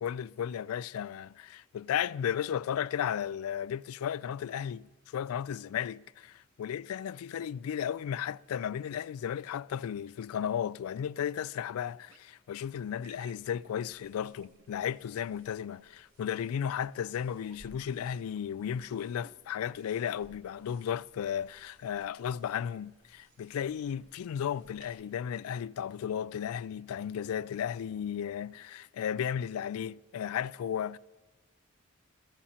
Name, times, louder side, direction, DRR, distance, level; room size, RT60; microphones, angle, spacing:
voice 1, 0.0-31.0, left 9 dB, 85° left, 0.3 m, -34 dB
sound 1, 12.1-12.3 12.9-13.6 14.4-15.0 16.5-16.9 17.4-18.5 18.9-19.4, right 4 dB, 85° right, 1.0 m, -60 dB
sound 2, 12.6-24.9, right 1 dB, 70° right, 4.9 m, -64 dB
21.5 x 15.0 x 2.9 m
head